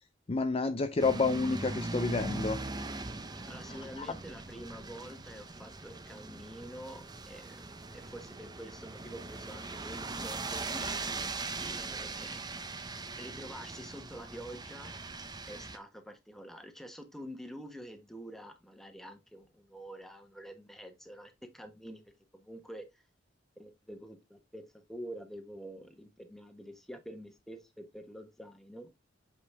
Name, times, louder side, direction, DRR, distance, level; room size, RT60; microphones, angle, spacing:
voice 1, 0.3-2.6, left 3 dB, 30° left, 0.5 m, -29 dB
sound 1, 1.0-15.8, right 3 dB, 20° right, 0.8 m, -40 dB
voice 2, 3.0-11.4 11.7-12.5 13.2-14.9 15.5-22.0 22.3-23.0 23.6-28.9, equal, ahead, 1.3 m, -47 dB
8.0 x 5.2 x 3.4 m
head